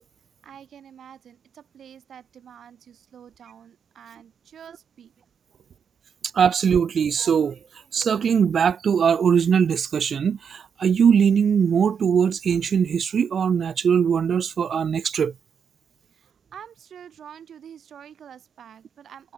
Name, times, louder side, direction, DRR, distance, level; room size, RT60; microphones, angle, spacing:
voice 1, 0.4-5.1 5.5-5.8 16.1-19.3, right 9 dB, 80° right, 2.7 m, -46 dB
voice 2, 6.3-7.6 7.9-15.3, right 7 dB, 65° right, 0.5 m, -21 dB
cardioid pair, 105°, 0 cm